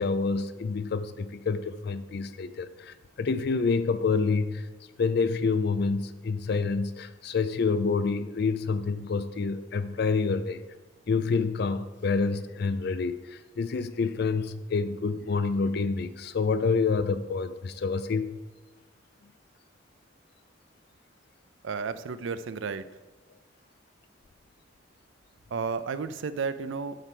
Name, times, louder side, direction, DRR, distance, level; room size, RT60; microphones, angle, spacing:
voice 1, 0.0-4.7 5.0-10.6 11.1-18.4, left 4 dB, 50° left, 12 dB, 0.4 m, -28 dB
voice 2, 21.6-22.9 25.5-27.0, right 5 dB, 70° right, 12 dB, 0.4 m, -32 dB
7.9 x 4.5 x 5.9 m, 1.2 s
head